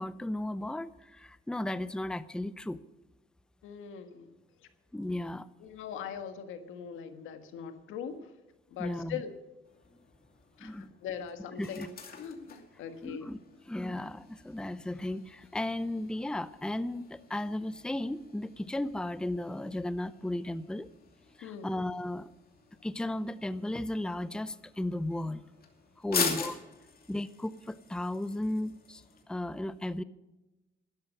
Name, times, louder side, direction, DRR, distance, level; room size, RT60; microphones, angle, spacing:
voice 1, 0.0-2.8 4.9-5.5 8.8-9.2 10.6-10.9 11.6-11.9 13.0-13.4 13.7-20.9 21.4-22.3 22.8-25.4 26.0-26.5 27.1-29.0 29.3-30.0, left 1 dB, 5° left, 15 dB, 0.6 m, -35 dB
voice 2, 3.6-4.3 5.6-8.3 8.7-9.3 10.6-13.3 21.4-21.7 26.1-26.5, left 7 dB, 90° left, 8 dB, 1.6 m, -41 dB
sound 1, 9.6-29.2, left 5 dB, 50° left, 2.6 m, -43 dB
12.5 x 10.5 x 7.2 m, 1.0 s
cardioid pair, 90°, 20 cm